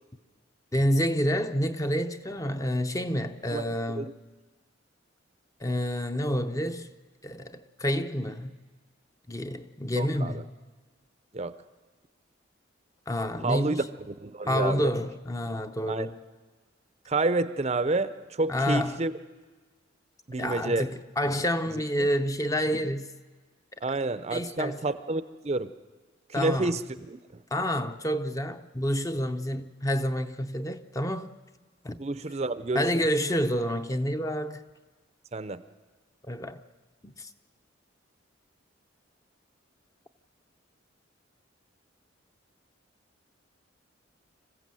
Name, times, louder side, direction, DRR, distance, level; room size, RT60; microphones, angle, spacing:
voice 1, 0.7-4.1 5.6-6.9 7.2-8.6 9.3-10.4 13.1-13.8 14.4-16.2 18.5-19.0 20.4-23.1 24.3-24.8 26.3-26.7 27.5-31.3 31.8-32.0 32.7-34.6 36.3-36.6 37.0-37.3, equal, 15° left, 0.6 m, -28 dB
voice 2, 3.5-4.1 10.0-10.4 11.3-11.5 13.4-14.9 15.9-16.1 17.1-19.1 20.3-20.9 21.7-21.8 23.8-25.7 26.3-26.8 27.1-27.4 32.0-32.9 35.3-35.6, right 2 dB, 30° right, 0.6 m, -29 dB
26.0 x 15.5 x 7.6 m
head